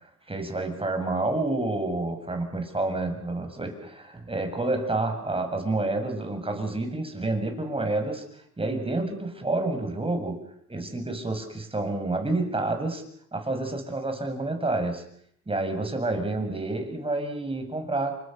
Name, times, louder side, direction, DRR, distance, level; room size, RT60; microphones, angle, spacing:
voice 1, 0.3-8.2 8.6-10.4 10.7-13.0 13.3-15.0 15.5-18.2, right 2 dB, 20° right, 5 dB, 7.1 m, -29 dB
29.0 x 25.5 x 6.7 m, 0.65 s
cardioid pair, 90°, 30 cm